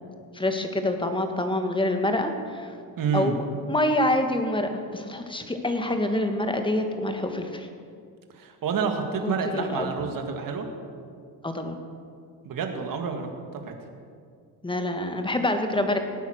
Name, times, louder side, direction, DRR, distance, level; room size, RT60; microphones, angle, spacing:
voice 1, 0.3-2.7 3.1-7.7 9.2-9.9 11.4-11.8 14.6-16.0, left 1 dB, 10° left, 6 dB, 1.6 m, -26 dB
voice 2, 3.0-3.4 8.3-10.7 12.4-13.3 13.5-13.7, right 5 dB, 55° right, 4 dB, 2.0 m, -28 dB
17.5 x 9.4 x 6.4 m, 2.2 s
cardioid pair, 105°, 40 cm